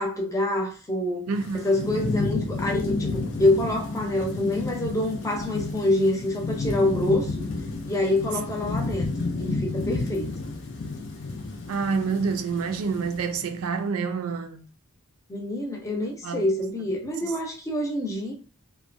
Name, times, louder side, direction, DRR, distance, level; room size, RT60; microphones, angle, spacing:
voice 1, 0.0-1.3 1.6-7.3 7.9-9.1 9.4-10.3 15.3-18.3, left 1 dB, 15° left, 0.6 m, -26 dB
Thunderstorm / Rain, 1.3-13.6, left 3 dB, 60° left, 0.5 m, -31 dB
voice 2, 1.3-1.9 11.7-14.6 16.2-16.4 17.2-17.3, right 5 dB, 85° right, 0.4 m, -28 dB
2.6 x 2.1 x 2.5 m
head